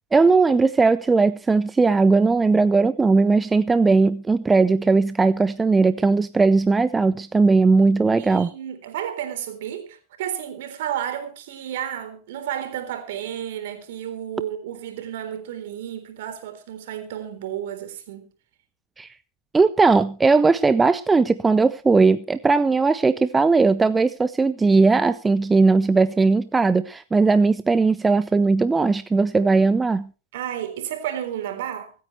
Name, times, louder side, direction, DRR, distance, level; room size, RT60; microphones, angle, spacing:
voice 1, 0.1-8.5 19.0-19.1 19.5-30.1, right 4 dB, 15° right, 0.6 m, -18 dB
voice 2, 8.2-18.3 30.3-31.9, right 10 dB, 60° right, 3.7 m, -32 dB
25.0 x 9.4 x 3.2 m
hypercardioid pair, 95°, 0 cm